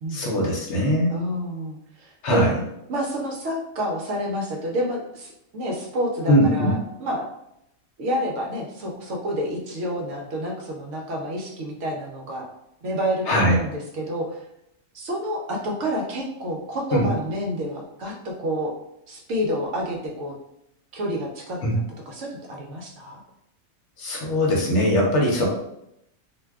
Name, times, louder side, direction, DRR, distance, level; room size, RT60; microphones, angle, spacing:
voice 1, 0.1-1.1 2.2-2.6 6.3-6.7 13.3-13.6 16.9-17.1 21.6-21.8 24.0-25.5, equal, 60° left, -2 dB, 0.9 m, -20 dB
voice 2, 1.1-2.5 2.9-7.3 8.0-12.5 12.8-14.4 14.9-18.7 19.1-20.3 20.9-21.8 22.1-23.2, equal, 65° right, -1 dB, 0.9 m, -29 dB
2.5 x 2.1 x 3.4 m, 0.80 s
omnidirectional pair, 1.5 m